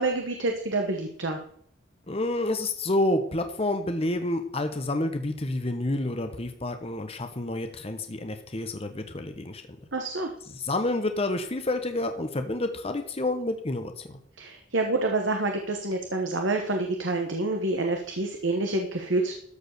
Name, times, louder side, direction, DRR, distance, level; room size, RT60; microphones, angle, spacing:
voice 1, 0.0-1.4 9.9-10.3 14.4-19.3, right 2 dB, 80° right, 4 dB, 1.2 m, -27 dB
voice 2, 2.1-9.6 10.6-14.2, left 2 dB, 30° left, 7 dB, 1.0 m, -29 dB
13.5 x 4.9 x 6.6 m, 0.66 s
head